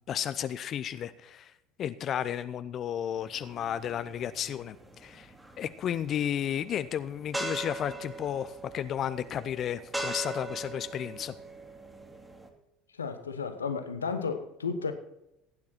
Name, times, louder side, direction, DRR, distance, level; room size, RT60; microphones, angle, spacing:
voice 1, 0.0-1.5 1.8-11.3, left 9 dB, 45° left, 14 dB, 0.6 m, -33 dB
sound 1, 3.2-12.5, right 2 dB, 10° right, 2.7 m, -40 dB
voice 2, 12.9-14.9, left 5 dB, 85° left, 8 dB, 1.0 m, -33 dB
16.5 x 9.6 x 4.4 m, 0.84 s
figure-of-eight pair, 65°, 0 cm